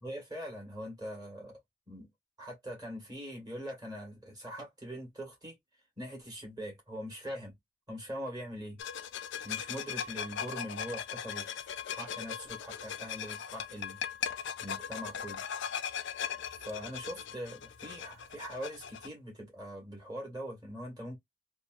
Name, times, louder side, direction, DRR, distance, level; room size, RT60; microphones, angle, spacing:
voice 1, 0.0-1.6 1.9-2.1 2.4-5.6 6.0-7.5 7.9-8.8 9.4-15.4 16.6-21.2, equal, 20° right, 1.4 m, -42 dB
sound 1, 8.8-19.1, left 8 dB, 55° left, 0.4 m, -39 dB
2.8 x 2.3 x 2.3 m
head